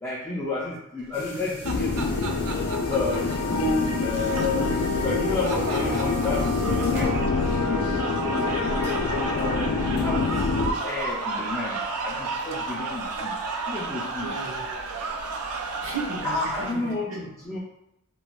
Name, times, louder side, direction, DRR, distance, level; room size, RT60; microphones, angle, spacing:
voice 1, 0.0-2.1 2.9-8.0 8.2-9.0 9.3-10.5 10.8-13.4 13.7-14.4 16.2-17.6, left 2 dB, 15° left, -8 dB, 0.4 m, -31 dB
sound 1, 1.1-16.9, left 2 dB, 50° left, 0.8 m, -42 dB
sound 2, 1.3-16.7, right 3 dB, 80° right, 0.4 m, -33 dB
sound 3, 1.6-10.7, left 4 dB, 85° left, 0.4 m, -26 dB
voice 2, 9.0-9.3 14.2-14.8 15.8-17.2, right 3 dB, 65° right, -3 dB, 0.9 m, -36 dB
3.0 x 2.3 x 3.0 m, 0.83 s
head